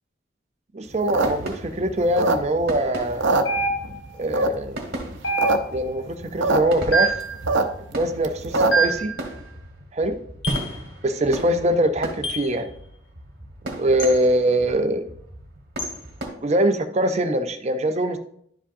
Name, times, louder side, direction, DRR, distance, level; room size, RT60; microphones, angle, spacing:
voice 1, 0.7-3.3 4.2-4.8 5.7-7.2 7.9-9.1 9.9-10.1 11.0-12.7 13.6-15.1 16.4-18.2, right 1 dB, 35° right, 8 dB, 0.5 m, -23 dB
sound 1, 0.9-2.8 3.1-4.0 4.3-4.8 5.2-5.6 5.8-5.9 6.1-6.6 6.9-8.9, right 2 dB, 85° right, 0.6 m, -22 dB
sound 2, 1.1-16.3, right 1 dB, 55° right, 1.7 m, -37 dB
sound 3, 3.5-4.1 5.2-5.9 6.9-7.3 8.7-9.1 10.4-10.7 12.2-12.5 14.0-14.2 15.8-16.0, right 3 dB, 75° left, 1.2 m, -24 dB
11.0 x 5.0 x 2.6 m, 0.68 s
head